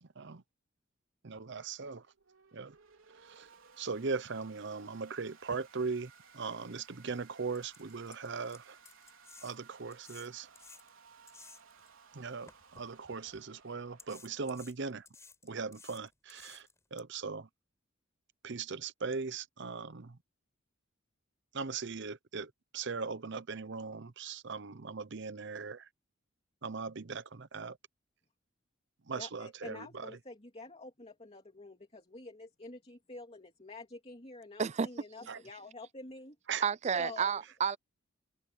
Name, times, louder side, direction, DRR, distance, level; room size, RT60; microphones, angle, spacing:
voice 1, 0.0-0.4 1.2-2.1 2.5-2.7 3.1-3.5 3.8-8.8 9.4-10.5 12.1-15.1 15.4-17.5 18.4-20.2 21.5-25.9 26.6-27.8 29.1-30.1 35.3-35.4 36.5-36.7, right 4 dB, 60° right, 0.8 m, -39 dB
sound 1, 1.9-14.6, right 6 dB, 75° right, 4.0 m, -60 dB
sound 2, 6.5-6.6 7.1-7.2 7.5-11.9 12.5-13.4 14.0-17.0, left 4 dB, 15° left, 4.5 m, -56 dB
voice 2, 29.1-36.4 37.0-37.4, left 2 dB, 30° left, 2.7 m, -48 dB
voice 3, 36.6-37.8, right 6 dB, 35° right, 0.4 m, -30 dB
head